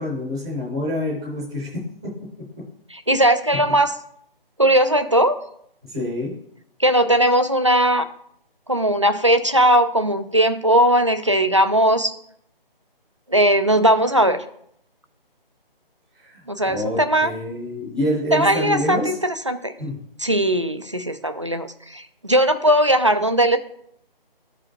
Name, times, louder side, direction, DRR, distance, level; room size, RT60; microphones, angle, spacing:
voice 1, 0.0-2.1 5.8-6.3 16.1-19.2 19.8-20.0, left 1 dB, 5° right, -8 dB, 0.7 m, -27 dB
voice 2, 3.1-3.9 4.6-5.4 6.8-8.0 8.7-12.1 13.3-14.4 16.5-17.3 18.3-19.7 20.2-23.6, right 1 dB, 35° right, 10 dB, 0.4 m, -18 dB
12.5 x 5.0 x 2.8 m, 0.70 s
figure-of-eight pair, 165°, 30 cm